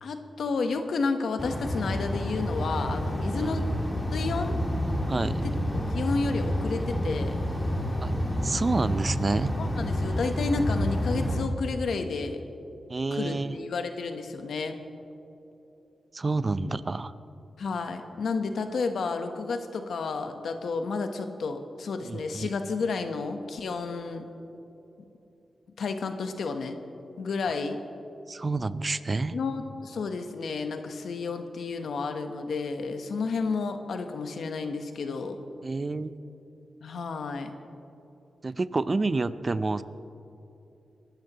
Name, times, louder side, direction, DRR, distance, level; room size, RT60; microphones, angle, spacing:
voice 1, 0.0-3.7 4.1-4.5 5.4-5.5 5.9-7.4 9.6-12.4 13.1-14.8 17.6-24.2 25.8-26.8 27.2-27.8 29.3-35.4 36.8-37.5, left 4 dB, 80° left, 7 dB, 1.0 m, -31 dB
sound 1, 1.4-11.4, equal, 15° left, 2.2 m, -29 dB
voice 2, 5.1-5.4 8.0-8.1 8.4-9.5 12.9-13.6 16.1-17.1 22.0-22.5 28.3-29.4 35.6-36.1 38.4-39.8, right 3 dB, 35° right, 14 dB, 0.5 m, -28 dB
23.5 x 13.0 x 3.0 m, 2.9 s
cardioid pair, 75°, 0 cm